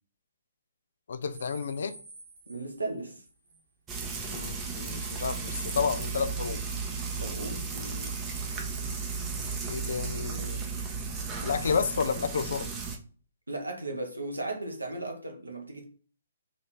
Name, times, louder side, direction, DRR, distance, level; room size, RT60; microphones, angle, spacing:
voice 1, 1.1-2.0 4.3-6.6 7.7-8.1 9.7-10.6 11.4-12.7, left 5 dB, 60° left, 0.4 m, -31 dB
sound 1, 1.3-3.7 4.0-4.1 5.0-10.7, right 2 dB, 50° right, 1.2 m, -52 dB
voice 2, 2.5-3.2 7.2-7.6 13.5-15.8, right 2 dB, 80° right, 0.9 m, -36 dB
Frying (food), 3.9-13.0, right 5 dB, 20° right, 0.6 m, -35 dB
3.2 x 2.6 x 4.0 m
figure-of-eight pair, 130°, 0 cm